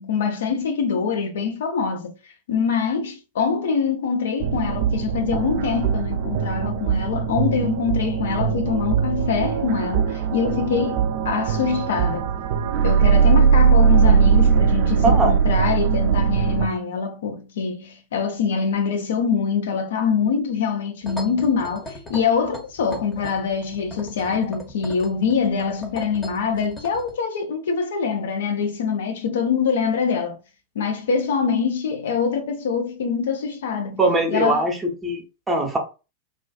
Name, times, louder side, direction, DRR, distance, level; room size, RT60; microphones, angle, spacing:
voice 1, 0.0-2.1 2.5-12.3 12.8-30.4 30.8-34.0 34.3-34.6, left 6 dB, 60° left, 0.5 m, -24 dB
sound 1, 4.4-16.7, right 6 dB, 50° right, 0.4 m, -20 dB
voice 2, 15.0-15.3 33.9-35.8, right 2 dB, 15° right, 0.7 m, -21 dB
sound 2, 21.0-27.1, left 1 dB, 15° left, 0.8 m, -38 dB
2.4 x 2.3 x 2.3 m
figure-of-eight pair, 95°, 0 cm